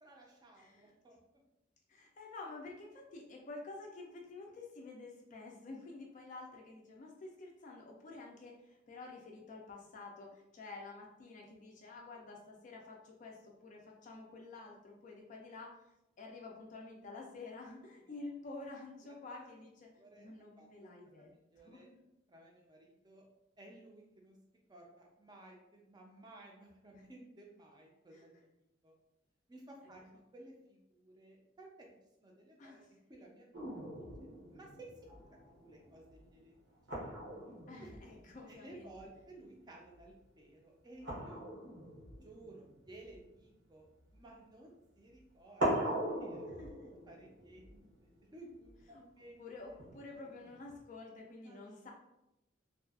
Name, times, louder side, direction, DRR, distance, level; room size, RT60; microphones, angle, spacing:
voice 1, 0.0-1.2 18.0-18.2 19.0-19.6 20.0-20.9 21.2-21.9 22.3-23.3 23.6-24.4 24.7-28.4 28.8-28.9 29.5-31.9 32.2-33.9 34.5-34.9 35.2-35.3 35.6-36.5 37.0-37.1 37.8-37.9 38.5-41.4 42.2-43.9 44.1-46.5 47.1-49.4 49.7-49.8 51.4-51.9, right 2 dB, 20° right, -1 dB, 0.5 m, -56 dB
voice 2, 0.6-0.9 1.9-15.8 16.2-19.9 20.2-21.3 21.6-22.0 26.9-27.0 28.1-28.2 32.6-32.9 37.7-39.0 46.6-46.9 48.9-51.9, left 3 dB, 40° left, 0 dB, 0.4 m, -50 dB
sound 1, 33.5-39.4 39.7-40.1 41.0-44.3 45.1-45.2 45.6-48.8 49.8-50.8, right 1 dB, 80° right, 1.0 m, -41 dB
2.6 x 2.3 x 2.3 m, 0.89 s
head